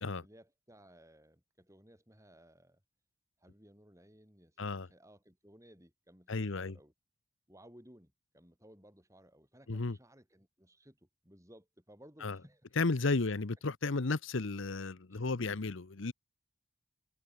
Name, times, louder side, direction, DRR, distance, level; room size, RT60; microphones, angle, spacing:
voice 1, 0.2-2.8 3.4-6.9 7.5-12.6 13.1-13.2 15.1-15.3, equal, 15° right, 6.2 m, -59 dB
voice 2, 4.6-4.9 6.3-6.7 9.7-10.0 12.2-12.4 12.8-16.1, left 3 dB, 65° left, 0.9 m, -33 dB
head